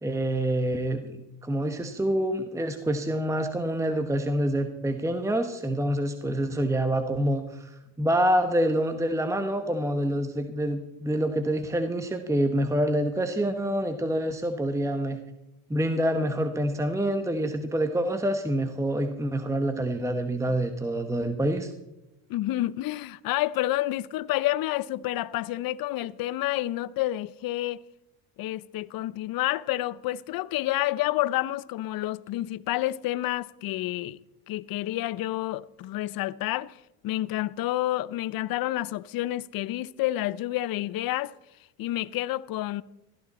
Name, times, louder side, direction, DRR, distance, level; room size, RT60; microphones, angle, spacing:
voice 1, 0.0-15.2 15.7-21.7, right 1 dB, 5° right, 1.1 m, -27 dB
voice 2, 22.3-27.8 28.4-34.2 34.5-36.8 37.0-41.3 41.8-42.8, left 15 dB, 55° left, 0.6 m, -29 dB
16.5 x 14.0 x 4.2 m
cardioid pair, 105°, 43 cm